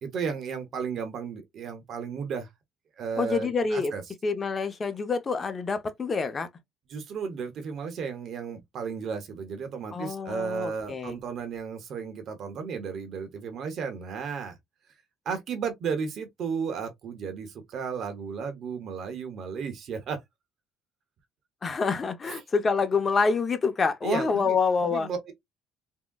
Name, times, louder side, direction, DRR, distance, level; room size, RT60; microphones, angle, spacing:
voice 1, 0.0-2.5 3.0-4.0 6.9-14.6 15.3-20.2 22.3-22.4 24.0-24.6 24.8-25.3, right 6 dB, 55° right, 0.8 m, -34 dB
voice 2, 3.2-3.9 4.2-6.5 9.9-11.2 21.6-25.1, left 4 dB, 30° left, 0.6 m, -27 dB
3.6 x 2.0 x 2.2 m
cardioid pair, 125°, 0 cm